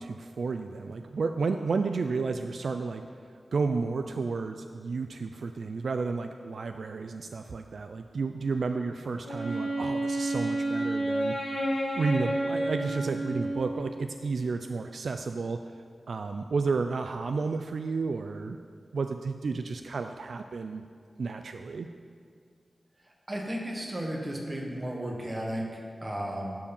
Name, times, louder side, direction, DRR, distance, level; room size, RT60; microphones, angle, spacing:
voice 1, 0.0-3.0 3.5-11.3 11.9-15.6 16.1-18.6 18.9-20.8 21.2-21.9, right 4 dB, 75° right, 7 dB, 0.3 m, -31 dB
Wind instrument woodwind instrument, 9.2-14.0, right 1 dB, 90° left, 1.8 m, -30 dB
voice 2, 23.3-26.6, right 1 dB, 25° right, 0 dB, 1.4 m, -34 dB
12.0 x 4.8 x 5.3 m, 2.1 s
wide cardioid pair, 110°, 0 cm